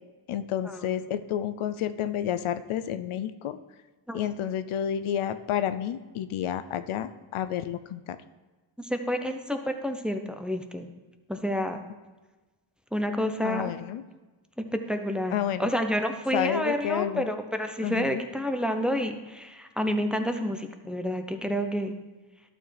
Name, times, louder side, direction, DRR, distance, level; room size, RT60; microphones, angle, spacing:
voice 1, 0.3-3.6 4.1-8.0 13.4-14.0 15.3-15.7 16.3-17.3 17.8-18.2, left 10 dB, 85° left, 12 dB, 0.6 m, -30 dB
voice 2, 8.8-10.9 11.3-11.8 12.9-13.7 14.6-21.9, equal, ahead, 6 dB, 0.7 m, -29 dB
12.0 x 6.3 x 3.3 m, 1.2 s
cardioid pair, 75°, 48 cm